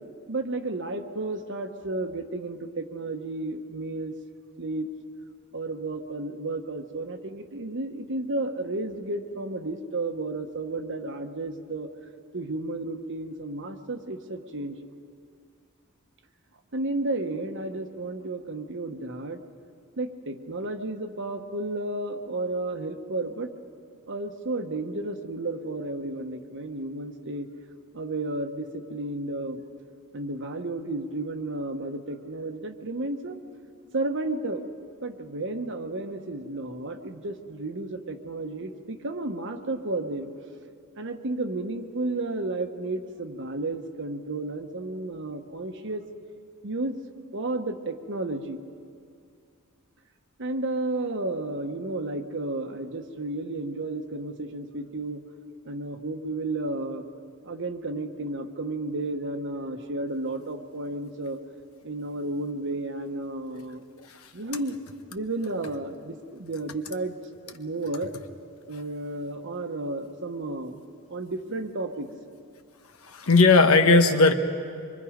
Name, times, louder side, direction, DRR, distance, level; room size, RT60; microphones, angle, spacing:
voice 1, 0.3-4.1 4.6-4.9 5.5-11.9 12.3-14.8 16.7-19.4 20.0-23.5 24.1-27.5 27.9-29.6 30.1-33.4 33.9-34.6 35.0-40.3 40.9-46.0 46.6-47.0 47.3-48.6 50.4-55.3 55.6-57.0 57.4-61.4 61.8-63.9 64.3-64.8 65.1-67.2 67.4-68.1 68.7-70.8 71.1-72.1, right 2 dB, 60° right, 7 dB, 1.2 m, -32 dB
voice 2, 73.1-74.3, left 3 dB, 75° left, 7 dB, 1.2 m, -17 dB
26.0 x 23.5 x 5.1 m, 2.3 s
head